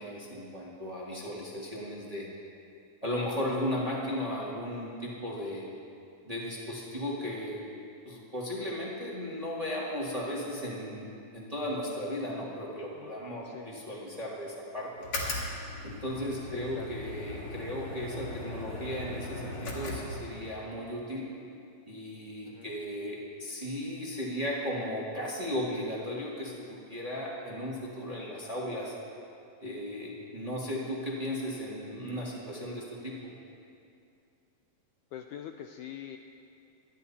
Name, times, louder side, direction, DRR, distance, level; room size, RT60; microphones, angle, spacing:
voice 1, 0.0-2.3 3.0-5.6 6.2-7.6 8.0-14.9 15.8-21.3 21.9-28.9 29.6-33.2, left 1 dB, 20° right, -4 dB, 0.9 m, -36 dB
sound 1, 15.0-20.6, left 2 dB, 45° left, 2.9 m, -38 dB
voice 2, 16.4-17.0 22.5-22.7 35.1-36.2, left 10 dB, 80° left, 5 dB, 1.8 m, -44 dB
26.0 x 10.5 x 4.2 m, 2.6 s
omnidirectional pair, 4.1 m